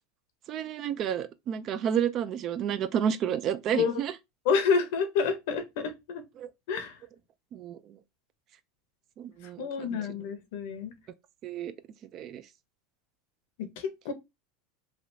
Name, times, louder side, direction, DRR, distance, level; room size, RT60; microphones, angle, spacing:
voice 1, 0.5-4.1 6.4-6.5 7.5-7.8 9.2-10.0 11.4-11.7 12.1-12.4, right 9 dB, 35° right, 0.3 m, -30 dB
voice 2, 4.4-6.2 6.7-7.0 9.6-10.9 13.6-14.1, left 6 dB, 70° left, 0.8 m, -28 dB
3.3 x 2.4 x 2.6 m
supercardioid pair, 140°, 0 cm